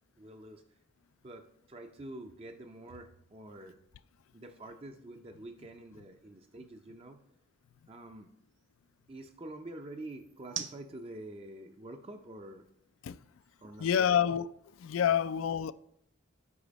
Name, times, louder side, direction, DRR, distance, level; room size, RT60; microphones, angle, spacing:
voice 1, 0.2-0.6 1.2-3.8 4.3-7.2 7.9-8.3 9.1-12.7 13.6-14.1, right 1 dB, 30° right, 0.4 m, -47 dB
sound 1, 0.8-15.0, right 9 dB, 65° right, 0.7 m, -53 dB
voice 2, 13.8-14.5 14.8-15.7, left 8 dB, 90° left, 0.3 m, -27 dB
8.5 x 4.9 x 5.1 m
head